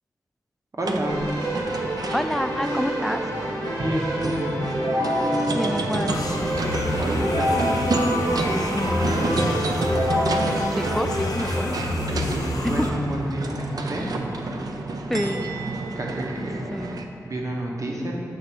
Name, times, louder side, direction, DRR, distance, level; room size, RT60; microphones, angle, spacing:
voice 1, 0.8-1.3 3.6-4.6 6.6-9.3 12.1-14.1 16.0-18.1, right 1 dB, 55° right, -1 dB, 1.0 m, -30 dB
sound 1, 0.8-17.0, right 2 dB, 70° right, 0.5 m, -30 dB
Keyboard (musical), 1.0-11.6, equal, 85° right, 1.4 m, -27 dB
voice 2, 2.1-3.2 5.5-6.2 10.8-11.8 12.8-12.9 15.1-15.4 16.7-17.1, equal, ahead, 9 dB, 0.3 m, -28 dB
sound 2, 6.1-12.9, left 2 dB, 60° left, 0.6 m, -29 dB
6.6 x 3.3 x 5.9 m, 2.6 s
cardioid pair, 55°, 7 cm